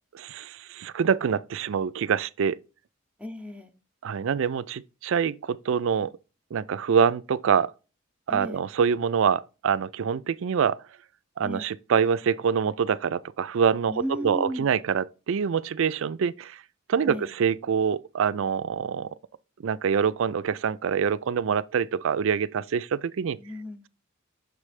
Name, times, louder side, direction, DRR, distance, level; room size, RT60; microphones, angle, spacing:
voice 1, 0.2-2.6 4.0-6.1 6.5-7.7 8.3-10.8 11.4-16.6 16.9-19.1 19.6-23.4, right 7 dB, 65° right, 0.4 m, -25 dB
voice 2, 3.2-3.7 8.3-8.6 11.4-11.7 13.9-14.7 17.0-17.4 23.4-23.9, equal, 5° right, 0.7 m, -35 dB
6.8 x 3.2 x 4.9 m
head